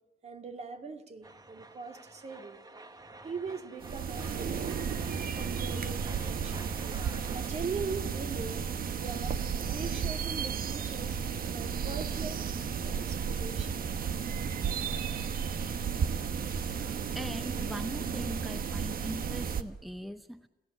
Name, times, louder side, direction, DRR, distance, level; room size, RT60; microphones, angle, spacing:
voice 1, 0.2-2.6 3.2-4.7 5.3-6.7 7.3-8.6 8.9-9.4 9.7-11.2 11.5-12.5 12.8-13.9, right 4 dB, 40° right, 6 dB, 2.2 m, -41 dB
sound 1, 1.2-7.5, right 2 dB, 25° right, 1.3 m, -49 dB
sound 2, 3.8-19.6, right 6 dB, 65° right, 1.2 m, -33 dB
sound 3, 5.1-10.2, right 8 dB, 85° right, 1.3 m, -47 dB
voice 2, 16.0-20.5, equal, ahead, 10 dB, 0.7 m, -42 dB
28.5 x 16.0 x 8.4 m, 1.1 s
wide cardioid pair, 135°, 16 cm